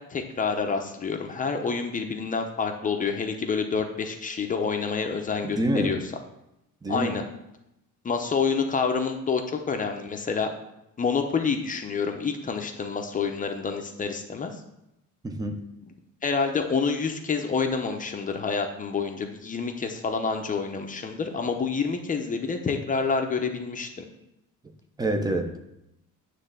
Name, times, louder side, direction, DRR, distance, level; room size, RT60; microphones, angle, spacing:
voice 1, 0.0-6.0 6.9-7.2 8.0-10.5 11.0-14.5 16.2-24.0, left 5 dB, 25° left, 4 dB, 0.7 m, -28 dB
voice 2, 5.4-6.0 6.8-7.2 15.2-15.7 25.0-25.6, right 1 dB, 10° right, 5 dB, 0.7 m, -27 dB
9.6 x 3.3 x 6.7 m, 0.86 s
cardioid pair, 170°, 32 cm